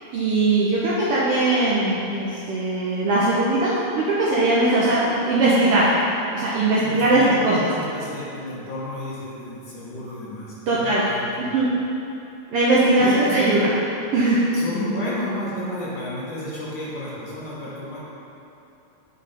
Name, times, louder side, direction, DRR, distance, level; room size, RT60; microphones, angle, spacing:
voice 1, 0.1-5.9 6.3-7.6 10.7-11.0 11.4-11.7 12.5-13.7 14.1-14.4, right 2 dB, 75° right, -7 dB, 1.4 m, -20 dB
voice 2, 6.8-11.5 13.0-13.6 14.5-18.0, left 1 dB, 60° left, -8 dB, 1.2 m, -31 dB
7.5 x 4.1 x 4.2 m, 2.9 s
omnidirectional pair, 3.3 m